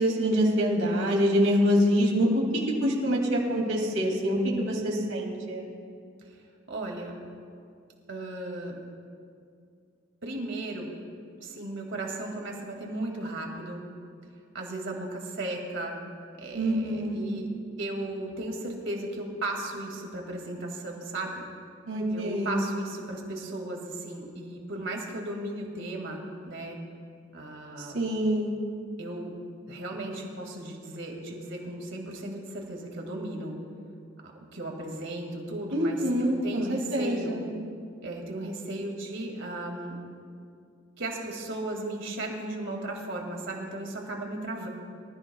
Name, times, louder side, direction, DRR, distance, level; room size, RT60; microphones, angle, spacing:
voice 1, 0.0-2.3 2.8-5.6 16.5-17.2 21.9-22.6 27.8-28.5 35.7-36.6 36.9-37.5, equal, 85° right, -2 dB, 2.7 m, -25 dB
voice 2, 6.7-7.2 8.1-8.8 10.2-10.9 11.4-13.8 14.5-16.0 16.4-17.5 17.8-21.4 22.1-26.8 27.3-28.0 29.0-29.4 29.7-33.5 34.5-37.4 38.0-40.0 41.0-44.7, right 1 dB, 65° right, 1 dB, 2.3 m, -36 dB
24.5 x 14.0 x 2.4 m, 2.3 s
head